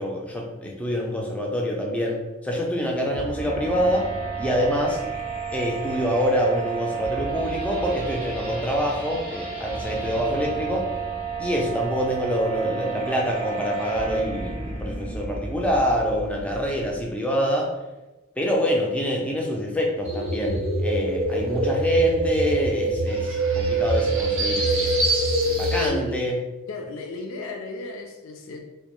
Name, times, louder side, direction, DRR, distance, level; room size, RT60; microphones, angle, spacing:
voice 1, 0.0-4.1 4.4-5.0 5.5-10.9 11.4-17.7 18.4-24.9 25.5-26.4, equal, 5° left, -1 dB, 0.3 m, -26 dB
voice 2, 3.0-3.3 4.7-5.0 24.4-24.9 25.8-26.3 26.7-28.6, left 2 dB, 80° left, 3 dB, 0.4 m, -35 dB
sound 1, 3.1-17.1, right 5 dB, 25° right, 0.7 m, -32 dB
sound 2, 20.0-25.9, right 1 dB, 70° right, 0.5 m, -24 dB
2.2 x 2.0 x 3.0 m, 1.1 s
head